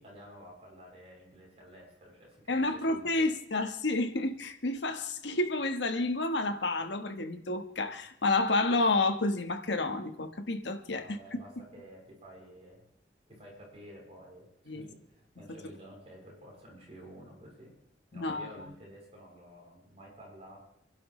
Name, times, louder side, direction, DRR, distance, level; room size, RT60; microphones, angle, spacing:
voice 1, 0.0-3.1 11.0-12.8 13.3-14.5 14.7-17.7 18.1-20.6, equal, 35° right, -3 dB, 7.1 m, -51 dB
voice 2, 2.5-11.4 14.7-14.8 18.1-18.5, left 2 dB, 75° left, 8 dB, 1.3 m, -30 dB
27.5 x 11.5 x 3.2 m, 0.76 s
head